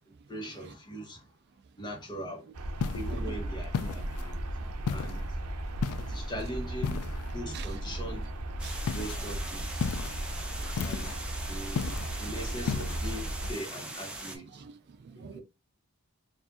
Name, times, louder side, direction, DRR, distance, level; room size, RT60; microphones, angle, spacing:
voice 1, 0.3-1.2 1.8-2.4 2.9-4.4 4.9-5.4 6.0-7.0 7.3-8.3 8.9-9.8 10.8-11.2 11.5-14.6 15.1-15.4, equal, 20° left, 1.1 m, -41 dB
sound 1, 2.5-13.5, right 1 dB, 85° right, 0.7 m, -36 dB
sound 2, 2.8-3.2 3.7-4.3 4.9-5.3 5.8-6.2 6.8-7.3 8.9-9.2 9.8-10.2 10.8-11.2 11.8-12.2 12.7-13.0, left 7 dB, 75° left, 0.3 m, -33 dB
sound 3, 8.6-14.4, right 1 dB, 5° right, 0.7 m, -41 dB
voice 2, 10.1-10.8 11.6-11.7 14.5-15.4, right 7 dB, 50° right, 0.3 m, -48 dB
4.5 x 2.5 x 2.7 m
head